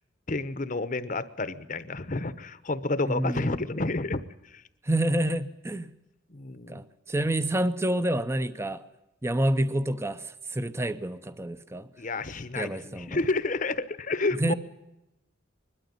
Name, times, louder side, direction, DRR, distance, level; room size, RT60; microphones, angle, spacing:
voice 1, 0.3-4.6 6.3-6.8 12.0-14.5, left 3 dB, 40° left, 0.9 m, -30 dB
voice 2, 3.0-3.6 4.8-5.9 6.7-8.8 9.2-11.9 12.6-13.2 14.4-14.5, right 1 dB, 15° right, 0.7 m, -28 dB
21.5 x 13.0 x 9.6 m
head